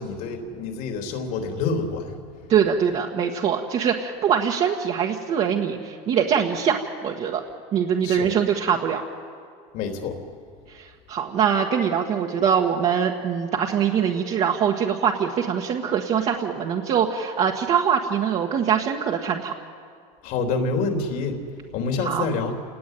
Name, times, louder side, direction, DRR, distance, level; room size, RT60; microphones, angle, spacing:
voice 1, 0.0-2.1 8.0-8.3 9.7-10.2 20.2-21.4 21.7-22.5, left 4 dB, 55° left, 4 dB, 3.6 m, -27 dB
voice 2, 2.5-7.4 7.7-9.0 10.7-19.5 22.0-22.3, right 7 dB, 40° right, -1 dB, 1.7 m, -23 dB
28.5 x 19.0 x 9.4 m, 2.2 s
cardioid pair, 155°, 17 cm